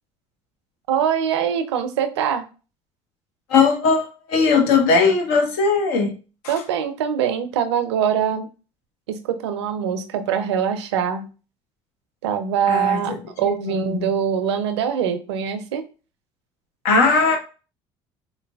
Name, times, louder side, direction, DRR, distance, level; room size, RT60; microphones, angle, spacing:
voice 1, 0.9-2.5 6.5-8.5 9.1-11.3 12.2-15.8, right 8 dB, 90° right, 0.4 m, -23 dB
voice 2, 3.5-6.1 6.4-6.5 12.7-14.1 16.8-17.4, left 4 dB, 80° left, 0.8 m, -19 dB
3.9 x 2.1 x 2.3 m
hypercardioid pair, 65°, 14 cm